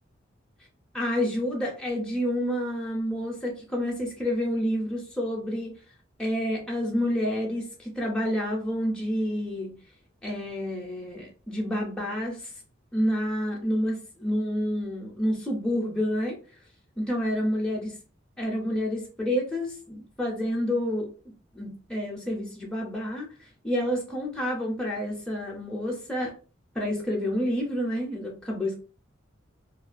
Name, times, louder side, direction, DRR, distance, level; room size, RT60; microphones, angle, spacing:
voice 1, 0.9-5.7 6.2-9.7 10.2-12.5 12.9-16.4 17.0-17.9 18.4-21.1 21.5-26.3 26.8-28.8, equal, 5° left, -2 dB, 0.5 m, -29 dB
2.3 x 2.2 x 2.4 m, 0.36 s
head